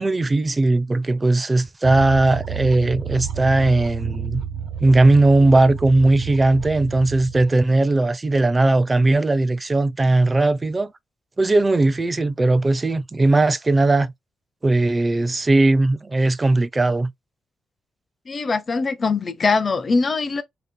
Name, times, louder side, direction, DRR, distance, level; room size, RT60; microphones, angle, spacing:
voice 1, 0.0-4.4 4.8-10.9 11.4-14.1 14.6-17.1, right 2 dB, 25° right, 0.4 m, -18 dB
sound 1, 1.8-7.5, right 8 dB, 80° right, 0.9 m, -31 dB
voice 2, 18.3-20.4, left 4 dB, 40° left, 0.5 m, -22 dB
3.1 x 2.8 x 3.7 m
cardioid pair, 85°, 0 cm